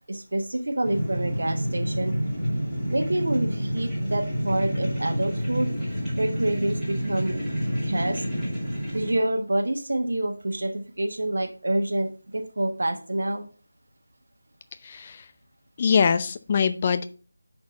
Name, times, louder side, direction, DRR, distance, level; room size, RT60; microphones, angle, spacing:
voice 1, 0.1-2.1 2.9-5.7 6.2-7.4 7.8-8.2 8.9-13.5, right 1 dB, 55° right, 4 dB, 1.3 m, -27 dB
sound 1, 0.8-9.2, equal, 5° left, 2.6 m, -28 dB
voice 2, 14.8-15.2 15.8-17.1, left 6 dB, 25° left, 10 dB, 0.5 m, -23 dB
10.0 x 4.4 x 4.2 m, 0.38 s
figure-of-eight pair, 165°, 0 cm